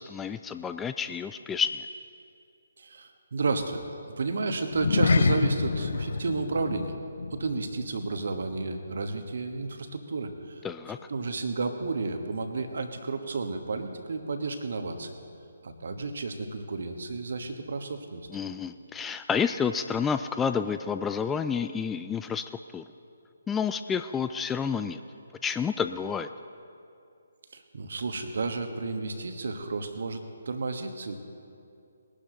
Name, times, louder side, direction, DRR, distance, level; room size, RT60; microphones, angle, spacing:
voice 1, 0.0-1.9 10.6-11.0 18.3-22.4 22.7-22.8 23.5-25.0 25.4-26.3, left 6 dB, 10° left, 10 dB, 0.3 m, -29 dB
voice 2, 2.8-3.8 4.2-7.0 7.3-10.6 11.1-15.1 15.6-18.3 27.5-31.1, right 3 dB, 55° right, 7 dB, 1.4 m, -32 dB
sound 1, 4.7-9.3 9.6-9.9 10.4-10.5, left 4 dB, 55° left, 0.6 m, -28 dB
21.0 x 12.0 x 3.9 m, 2.5 s
figure-of-eight pair, 140°, 0 cm